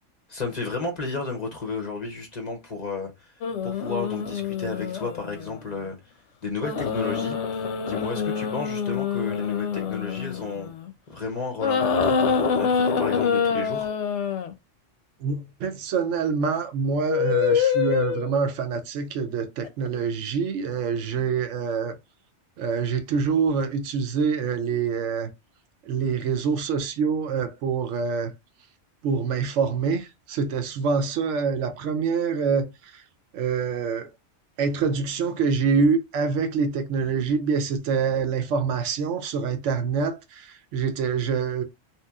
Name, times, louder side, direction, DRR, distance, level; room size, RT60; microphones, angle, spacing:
voice 1, 0.3-3.3 3.6-10.7 11.1-13.9, left 4 dB, 45° left, 0.6 m, -33 dB
sound 1, 3.4-5.6 6.6-10.9 11.6-14.5 16.8-18.4 19.7-19.9, left 6 dB, 75° left, 0.9 m, -26 dB
voice 2, 15.2-22.0 22.6-25.3 25.8-28.3 29.0-33.0 33.3-34.1 34.6-41.6, right 5 dB, 80° right, 0.9 m, -26 dB
2.9 x 2.9 x 2.3 m
omnidirectional pair, 1.3 m